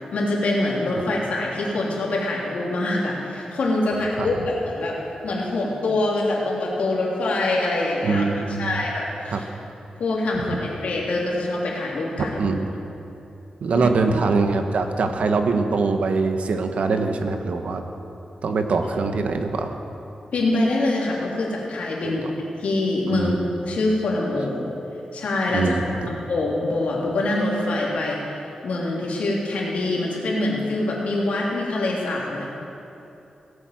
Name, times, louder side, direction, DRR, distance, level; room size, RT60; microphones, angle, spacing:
voice 1, 0.1-5.0 5.2-8.3 8.6-9.4 10.0-12.4 20.3-22.2 22.6-23.4 23.6-24.7 25.1-25.8 26.1-28.2 28.6-32.5, left 2 dB, 75° left, -3 dB, 3.2 m, -24 dB
voice 2, 8.0-8.8 9.3-9.4 10.3-10.6 12.4-12.7 13.6-17.8 18.4-19.7 22.0-22.2 23.1-23.3 25.5-26.1, right 4 dB, 70° right, 6 dB, 1.1 m, -23 dB
17.5 x 8.5 x 7.7 m, 2.9 s
wide cardioid pair, 135°, 2 cm